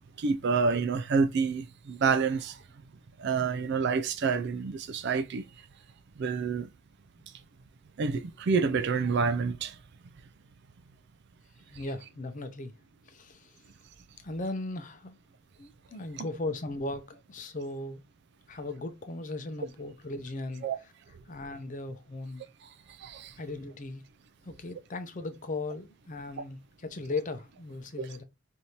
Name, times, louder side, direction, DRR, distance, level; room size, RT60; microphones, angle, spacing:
voice 1, 0.2-2.6 3.2-5.4 6.2-6.7 8.0-9.8 16.2-16.3 20.6-20.8 23.0-23.3 28.0-28.1, right 5 dB, 55° right, 0.4 m, -28 dB
voice 2, 11.6-12.7 13.1-13.6 14.2-15.1 15.6-18.0 18.5-20.6 21.3-22.4 23.4-24.0 24.4-28.2, left 2 dB, 40° left, 0.6 m, -37 dB
4.9 x 2.7 x 2.9 m
head